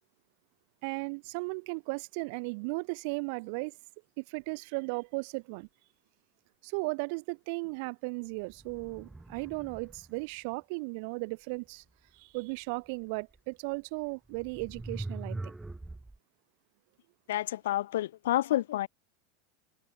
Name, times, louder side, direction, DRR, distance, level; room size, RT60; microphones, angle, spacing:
voice 1, 0.8-3.7 4.2-5.7 6.6-11.8 12.1-15.5, right 31 dB, 60° right, 2.0 m, -36 dB
sound 1, 8.5-10.2 13.3-13.4 14.3-16.2, right 2 dB, 10° right, 3.4 m, -42 dB
voice 2, 17.3-18.9, left 14 dB, 75° left, 1.2 m, -29 dB
hypercardioid pair, 95°, 0 cm